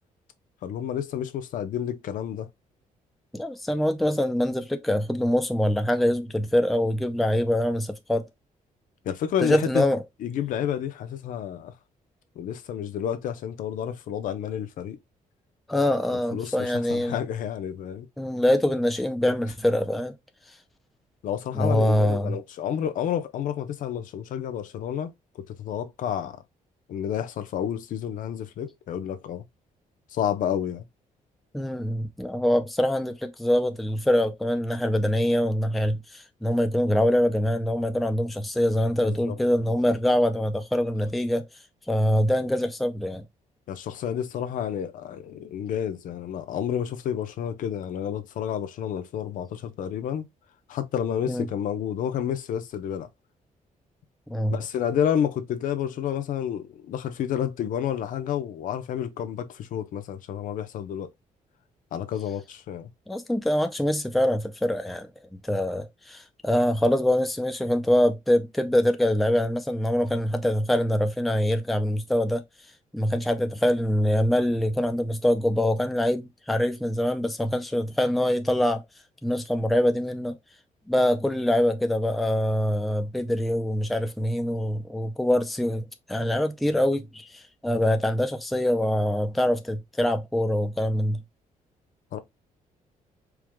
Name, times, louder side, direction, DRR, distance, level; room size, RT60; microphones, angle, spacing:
voice 1, 0.6-2.5 9.0-9.8 10.2-11.7 12.4-15.0 16.3-18.1 21.2-25.1 25.5-26.4 26.9-29.4 30.1-30.8 39.0-39.3 39.7-39.8 43.7-50.3 50.7-53.1 54.5-61.1 61.9-62.9 92.1-92.2, left 9 dB, 70° left, 0.6 m, -30 dB
voice 2, 3.3-8.3 9.4-10.0 15.7-17.1 18.2-20.1 21.6-22.4 31.5-41.4 41.9-43.3 51.3-51.5 54.3-54.6 63.1-65.1 65.4-72.4 72.9-78.8 79.2-80.3 80.9-91.2, left 1 dB, ahead, 0.4 m, -24 dB
4.6 x 2.2 x 3.5 m
cardioid pair, 170°, 14 cm